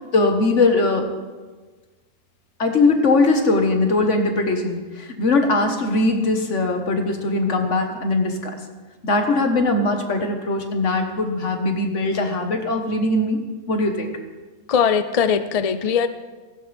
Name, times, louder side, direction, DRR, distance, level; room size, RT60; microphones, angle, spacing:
voice 1, 0.1-1.1 2.6-8.5 9.0-13.4 13.7-14.1, left 2 dB, 70° left, 4 dB, 1.8 m, -20 dB
voice 2, 14.7-16.1, left 7 dB, 45° left, 11 dB, 0.5 m, -20 dB
17.5 x 15.5 x 3.5 m, 1.3 s
omnidirectional pair, 1.3 m